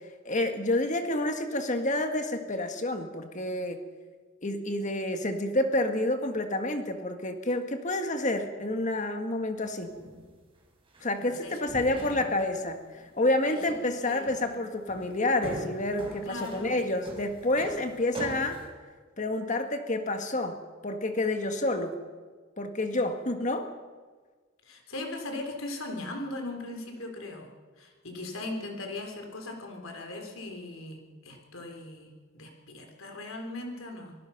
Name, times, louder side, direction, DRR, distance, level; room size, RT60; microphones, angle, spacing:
voice 1, 0.2-3.8 4.4-9.9 11.0-18.6 19.2-20.6 20.8-22.0 22.6-23.7, left 1 dB, 35° left, 6 dB, 1.6 m, -29 dB
sound 1, 9.6-10.4 10.9-11.1 11.7-12.5 12.9-13.2 13.7-14.0 14.3-14.5 14.9-18.7, right 1 dB, 25° right, 4.7 m, -41 dB
voice 2, 11.2-12.2 13.5-14.6 16.2-16.7 24.7-27.5 27.8-34.1, left 2 dB, 85° left, 3 dB, 3.9 m, -39 dB
25.0 x 18.5 x 5.9 m, 1.4 s
head